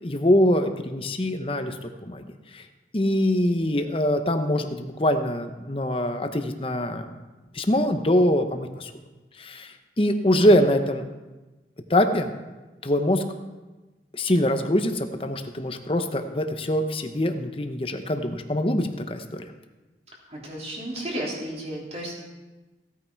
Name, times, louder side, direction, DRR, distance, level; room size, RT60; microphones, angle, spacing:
voice 1, 0.0-2.3 2.5-2.6 2.9-7.1 7.5-8.9 9.4-11.1 11.9-12.3 12.8-13.2 14.1-19.4, left 1 dB, 30° left, 7 dB, 0.9 m, -23 dB
voice 2, 20.3-22.1, right 1 dB, 35° right, -3 dB, 3.2 m, -33 dB
16.0 x 9.0 x 4.6 m, 1.2 s
head